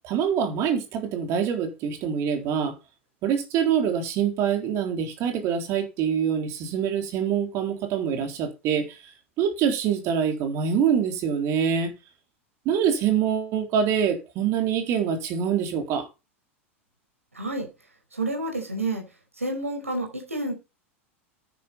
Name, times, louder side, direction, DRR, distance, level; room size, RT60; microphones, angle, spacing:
voice 1, 0.0-2.7 3.2-8.8 9.4-11.9 12.7-16.1, right 8 dB, 40° right, 3.6 m, -25 dB
voice 2, 17.3-17.7 18.1-19.0 19.4-20.5, right 2 dB, 80° right, 5.0 m, -29 dB
9.7 x 9.5 x 5.5 m
figure-of-eight pair, 85°, 7 cm